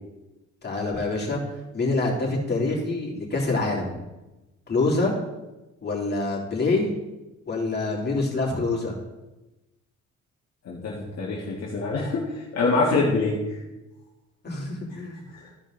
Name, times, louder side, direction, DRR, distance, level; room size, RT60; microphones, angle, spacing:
voice 1, 0.6-1.4 1.7-4.0 4.7-5.1 5.8-6.9 7.5-9.0 14.4-15.2, left 3 dB, 35° left, -3 dB, 3.2 m, -26 dB
voice 2, 10.7-13.4 15.3-15.5, left 3 dB, 55° left, -5 dB, 1.8 m, -25 dB
13.5 x 5.2 x 3.9 m, 1.0 s
cardioid pair, 90°, 30 cm